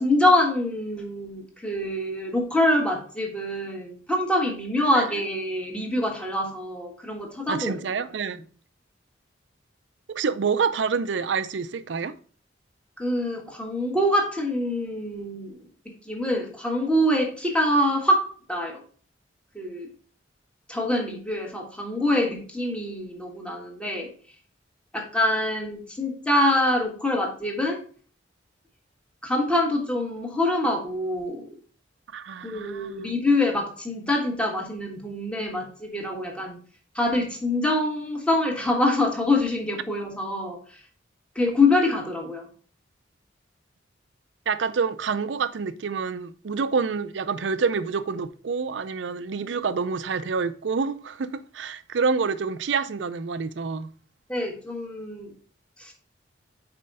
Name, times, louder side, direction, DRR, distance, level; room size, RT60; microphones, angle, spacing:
voice 1, 0.0-7.8 13.0-15.6 16.0-18.8 19.5-19.9 20.7-24.1 24.9-27.8 29.2-31.5 32.4-36.6 36.9-40.6 41.3-42.5 54.3-55.3 55.8-55.9, left 1 dB, 5° left, 1.4 m, -25 dB
voice 2, 7.5-8.4 10.1-12.2 32.1-33.1 44.5-53.9, right 5 dB, 75° right, 0.5 m, -27 dB
5.4 x 4.4 x 5.2 m
head